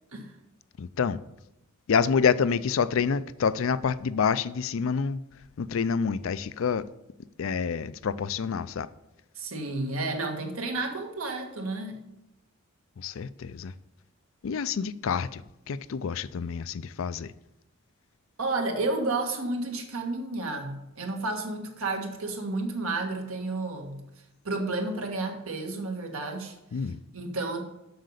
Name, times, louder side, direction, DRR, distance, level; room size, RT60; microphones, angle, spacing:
voice 1, 0.8-1.2 1.9-5.2 5.6-6.9 7.4-8.9 13.0-13.7 14.4-17.3 26.7-27.0, left 6 dB, 65° left, 0.4 m, -27 dB
voice 2, 9.4-12.0 18.4-24.0 24.4-26.6 27.1-27.6, right 2 dB, 80° right, 1.6 m, -31 dB
7.8 x 6.5 x 6.5 m
head